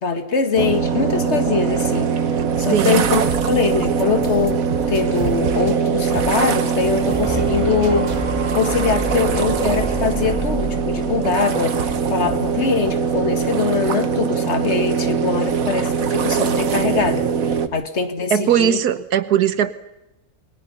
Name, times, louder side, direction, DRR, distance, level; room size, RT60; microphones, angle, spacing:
voice 1, 0.0-2.1 2.6-4.6 4.9-8.1 8.5-18.8, left 5 dB, 45° left, 8 dB, 2.1 m, -22 dB
sound 1, 0.6-17.7, right 6 dB, 65° right, 1.6 m, -21 dB
voice 2, 2.7-3.3 18.3-19.7, right 9 dB, 85° right, 13 dB, 1.6 m, -19 dB
sound 2, 3.0-8.3, right 5 dB, 35° right, 0.8 m, -34 dB
sound 3, 6.6-14.5 15.0-15.1, right 1 dB, 20° right, 1.5 m, -30 dB
28.0 x 21.5 x 5.6 m, 0.91 s
omnidirectional pair, 1.6 m